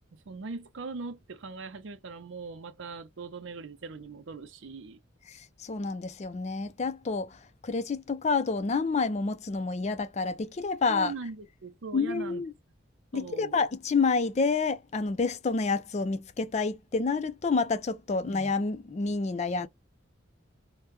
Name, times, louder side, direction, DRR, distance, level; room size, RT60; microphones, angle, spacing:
voice 1, 0.1-5.0 10.9-12.4 13.1-13.6 18.2-18.3, right 4 dB, 70° right, 0.5 m, -40 dB
voice 2, 5.3-7.4 7.6-11.1 11.9-12.5 13.1-19.7, left 4 dB, 35° left, 0.4 m, -29 dB
3.3 x 2.1 x 3.1 m
head